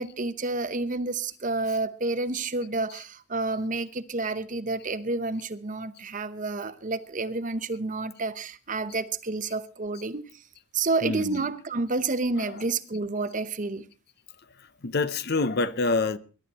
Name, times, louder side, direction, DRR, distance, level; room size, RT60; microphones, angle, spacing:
voice 1, 0.0-10.4 10.7-13.8, right 3 dB, 40° right, 0.9 m, -29 dB
voice 2, 11.0-11.4 12.4-12.6 14.8-16.2, left 3 dB, 50° left, 0.7 m, -27 dB
22.0 x 11.0 x 4.1 m
head